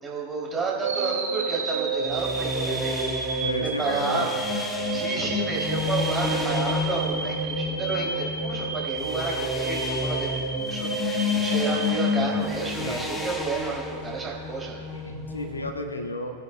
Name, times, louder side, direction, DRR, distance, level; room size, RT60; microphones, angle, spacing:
voice 1, 0.0-4.4 4.9-14.8, right 4 dB, 20° right, -4 dB, 3.2 m, -31 dB
sound 1, 0.8-12.9, right 4 dB, 70° right, 1.7 m, -31 dB
sound 2, 2.0-15.7, left 4 dB, 15° left, 1.1 m, -30 dB
voice 2, 3.4-4.3 12.8-13.0 14.9-16.3, left 1 dB, 80° left, 5 dB, 1.0 m, -32 dB
21.0 x 10.5 x 2.4 m, 2.3 s
figure-of-eight pair, 90°, 0 cm